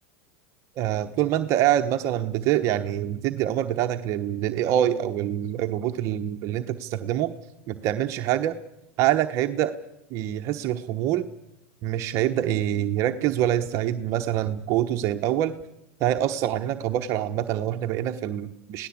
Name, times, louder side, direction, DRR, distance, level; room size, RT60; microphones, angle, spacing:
voice 1, 0.8-7.3 7.7-8.6 9.0-9.7 10.1-11.3 11.8-15.5 16.0-18.9, right 11 dB, 45° right, 6 dB, 1.1 m, -25 dB
27.0 x 17.5 x 8.6 m, 0.94 s
supercardioid pair, 130°, 7 cm